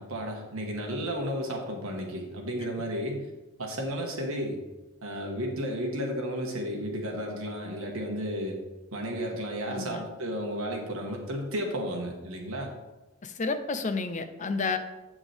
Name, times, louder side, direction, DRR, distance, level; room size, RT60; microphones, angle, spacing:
voice 1, 0.0-3.3 3.6-4.6 5.0-8.6 8.9-12.7, equal, 70° right, 1 dB, 1.6 m, -33 dB
voice 2, 9.7-10.0 13.2-14.8, left 4 dB, 35° left, 8 dB, 0.5 m, -30 dB
8.2 x 7.0 x 3.5 m, 1.1 s
head